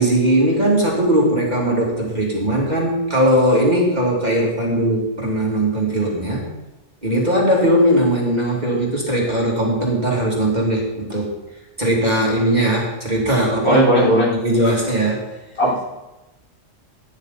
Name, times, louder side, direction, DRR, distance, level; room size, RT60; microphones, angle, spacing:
voice 1, 0.0-6.4 7.0-11.3 11.8-13.8 14.3-15.3, right 1 dB, 35° right, -3 dB, 2.8 m, -19 dB
voice 2, 13.6-14.3 15.6-15.8, equal, 55° left, -7 dB, 5.2 m, -15 dB
15.0 x 10.0 x 4.1 m, 1.0 s
omnidirectional pair, 1.3 m